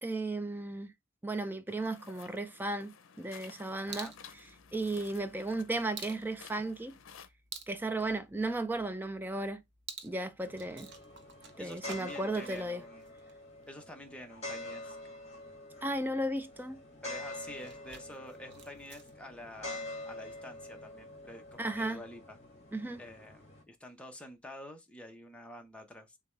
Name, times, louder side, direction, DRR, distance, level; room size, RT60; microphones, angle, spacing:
voice 1, 0.0-0.9 1.2-4.1 4.7-7.0 7.7-9.6 10.0-10.9 11.6-12.8 15.8-16.8 21.6-22.0 22.7-23.0, right 2 dB, 10° right, 0.4 m, -35 dB
sound 1, 1.7-7.3, left 7 dB, 80° left, 0.6 m, -54 dB
sound 2, 3.8-21.9, right 6 dB, 60° right, 0.8 m, -53 dB
sound 3, 10.4-23.6, left 2 dB, 30° left, 2.0 m, -46 dB
voice 2, 11.6-13.1 13.7-15.0 17.0-22.4 23.0-26.2, left 1 dB, 5° left, 0.8 m, -48 dB
6.7 x 2.3 x 3.2 m
head